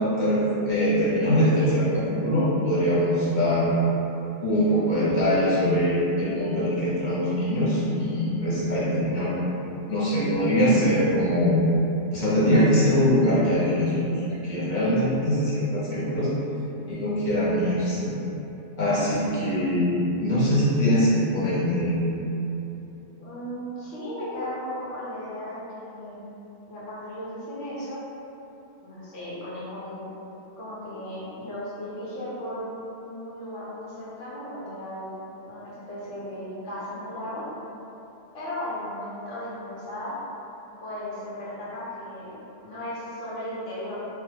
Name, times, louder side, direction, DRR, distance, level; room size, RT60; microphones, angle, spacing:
voice 1, 0.2-3.7 4.4-9.4 9.9-11.7 12.1-16.3 16.9-18.1 18.8-21.9, equal, 45° left, -10 dB, 0.7 m, -23 dB
voice 2, 23.2-26.2 26.6-28.0 28.8-30.1 30.6-35.1 35.5-37.4 38.3-40.1 40.8-42.4 42.6-44.1, equal, 85° left, -8 dB, 1.1 m, -36 dB
2.9 x 2.1 x 3.2 m, 3.0 s
omnidirectional pair, 1.2 m